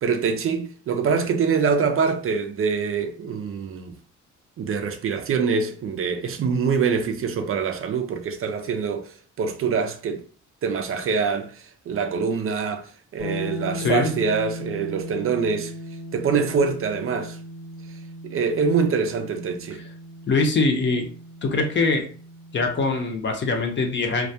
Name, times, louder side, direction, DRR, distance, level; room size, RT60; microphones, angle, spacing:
voice 1, 0.0-4.0 4.6-10.2 10.6-15.7 16.1-17.4 18.2-19.8, right 5 dB, 45° right, 0.4 m, -24 dB
sound 1, 13.2-23.0, equal, 70° left, 1.0 m, -37 dB
voice 2, 13.8-14.1 20.3-21.1 21.4-22.0 22.5-24.3, left 3 dB, 40° left, 0.6 m, -22 dB
2.2 x 2.2 x 2.7 m
cardioid pair, 90°, 30 cm